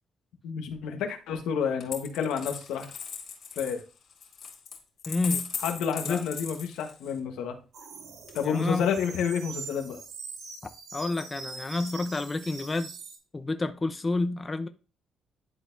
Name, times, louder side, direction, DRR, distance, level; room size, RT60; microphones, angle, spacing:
voice 1, 0.4-2.9 3.5-3.8 5.6-7.6 8.3-10.0, left 7 dB, 90° left, 1.3 m, -29 dB
Coin (dropping), 1.8-7.2 8.3-9.0, left 6 dB, 60° left, 2.1 m, -38 dB
voice 2, 5.1-5.5 6.1-6.2 8.4-8.9 10.9-12.9 13.3-14.7, left 2 dB, 25° left, 0.7 m, -29 dB
sound 1, 7.7-13.2, right 4 dB, 75° right, 1.7 m, -43 dB
11.0 x 4.1 x 2.7 m
cardioid pair, 90°, 0 cm